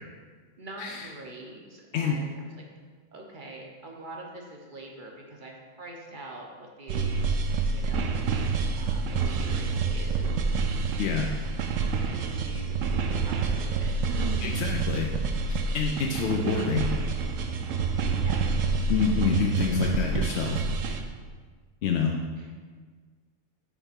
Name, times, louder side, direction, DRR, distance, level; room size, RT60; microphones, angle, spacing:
voice 1, 0.6-2.5 3.1-7.2 7.6-10.8 11.9-14.5 18.1-18.6 19.6-20.0, right 2 dB, 40° right, 0 dB, 0.8 m, -44 dB
sound 1, 6.9-21.0, right 4 dB, 70° right, 0.9 m, -28 dB
voice 2, 11.0-11.3 14.4-15.1 15.5-16.9 18.9-20.6 21.8-22.2, left 6 dB, 65° left, 1 dB, 0.7 m, -27 dB
7.2 x 3.4 x 5.7 m, 1.5 s
omnidirectional pair, 1.5 m